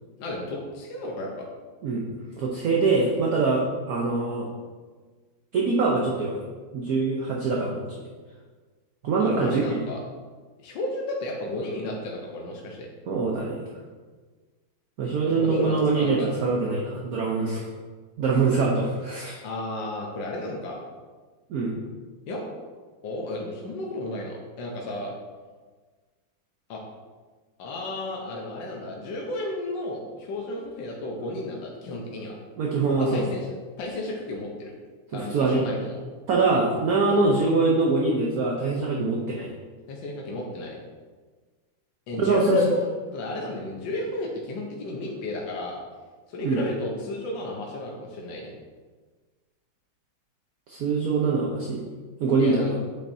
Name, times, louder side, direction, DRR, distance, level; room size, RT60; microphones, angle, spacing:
voice 1, 0.2-1.4 9.2-10.0 10.6-12.9 15.2-16.3 19.4-20.8 22.3-22.4 23.0-25.1 26.7-26.8 27.6-32.4 32.9-33.5 33.8-34.7 35.1-36.0 39.9-40.8 42.1-42.8 43.1-45.8 46.3-48.5 52.4-52.7, left 1 dB, 70° left, -1 dB, 1.6 m, -32 dB
voice 2, 2.4-4.5 5.5-6.4 6.7-7.8 9.0-9.8 13.1-13.7 15.0-17.7 18.2-19.4 21.5-21.7 32.6-33.3 35.1-35.6 36.3-39.5 42.2-42.6 46.4-46.6 50.7-51.8 52.2-52.8, right 3 dB, 60° right, -2 dB, 1.1 m, -24 dB
8.5 x 5.7 x 2.7 m, 1.4 s
omnidirectional pair, 2.1 m